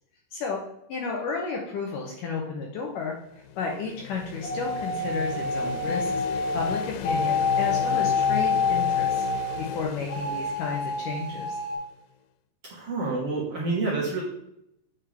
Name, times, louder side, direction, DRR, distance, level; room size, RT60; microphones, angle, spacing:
voice 1, 0.3-0.6 0.9-3.1 3.6-6.2 6.5-11.6, left 4 dB, 70° left, 0 dB, 2.1 m, -32 dB
sound 1, 3.1-11.9, left 9 dB, 90° left, 2.7 m, -37 dB
sound 2, 4.4-9.8 10.1-11.8, left 4 dB, 55° left, 4.3 m, -27 dB
voice 2, 12.7-14.2, right 3 dB, 55° right, -6 dB, 1.7 m, -28 dB
8.6 x 5.3 x 3.4 m, 0.78 s
omnidirectional pair, 4.7 m